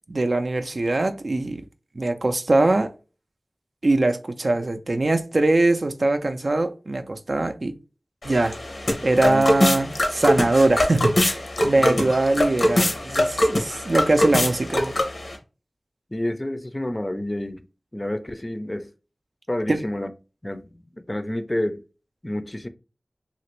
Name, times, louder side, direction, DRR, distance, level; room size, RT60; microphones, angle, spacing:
voice 1, 0.1-1.6 2.0-2.9 3.8-7.7 8.2-8.6 9.0-15.0 19.7-19.8, right 2 dB, 70° right, 0.4 m, -22 dB
sound 1, 8.2-15.4, left 1 dB, 90° left, 0.8 m, -23 dB
voice 2, 11.8-12.1 16.1-17.6 17.9-18.9 19.5-20.1 20.4-21.8 22.2-22.7, left 1 dB, 30° left, 0.4 m, -29 dB
2.9 x 2.5 x 3.0 m
wide cardioid pair, 50°, 0 cm